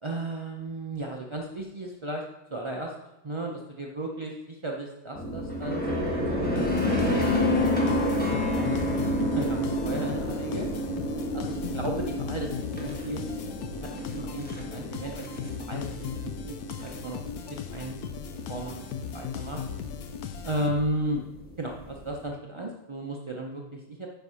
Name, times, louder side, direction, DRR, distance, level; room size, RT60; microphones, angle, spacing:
voice 1, 0.0-2.2 2.5-2.9 3.2-9.6 9.8-10.7 11.3-13.3 13.8-15.3 15.7-15.9 16.2-17.2 17.7-18.0 18.5-18.9 19.1-19.6 20.4-21.2 21.6-24.1, right 1 dB, 35° right, 0 dB, 0.4 m, -35 dB
sound 1, 5.1-22.2, left 1 dB, 5° left, 1.2 m, -30 dB
sound 2, 6.6-21.1, left 8 dB, 85° left, 1.2 m, -38 dB
9.5 x 4.6 x 5.6 m, 0.98 s
omnidirectional pair, 1.6 m